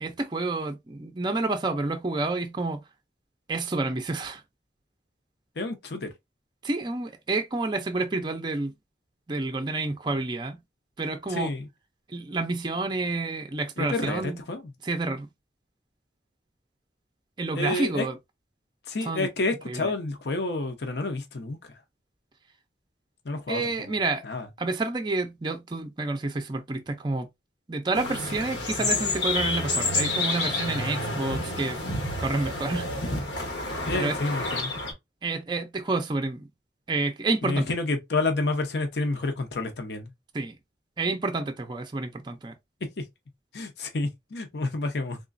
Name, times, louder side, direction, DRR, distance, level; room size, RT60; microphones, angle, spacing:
voice 1, 0.0-2.8 3.5-4.4 6.6-8.7 9.3-10.6 11.0-11.5 12.1-14.4 14.8-15.3 17.4-18.2 19.0-19.3 19.7-19.9 23.5-24.2 24.6-27.3 27.7-31.8 32.2-32.9 33.9-34.2 35.2-36.5 36.9-37.7 40.3-40.6 41.0-42.5, right 3 dB, 25° right, 0.4 m, -29 dB
voice 2, 5.6-6.1 11.3-11.7 13.8-14.7 17.5-18.1 18.9-21.6 23.2-23.9 24.2-24.5 33.9-34.7 37.4-40.1 43.0-43.1 43.5-45.2, left 2 dB, 65° left, 0.7 m, -29 dB
sound 1, 27.9-34.9, left 2 dB, 80° left, 1.2 m, -29 dB
3.7 x 3.0 x 2.5 m
head